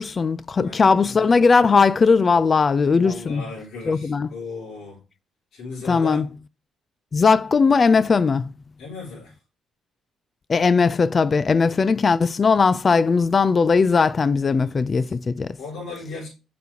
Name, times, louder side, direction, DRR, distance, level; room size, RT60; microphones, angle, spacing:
voice 1, 0.0-3.4 3.9-4.3 5.9-6.2 7.1-8.5 10.5-15.6, left 5 dB, 35° left, 0.4 m, -18 dB
voice 2, 0.6-1.3 3.0-5.0 5.5-6.3 8.8-9.3 11.7-11.8 14.6-15.1 15.6-16.3, left 3 dB, 75° left, 4.2 m, -36 dB
7.4 x 5.9 x 2.8 m
cardioid pair, 90°, 0 cm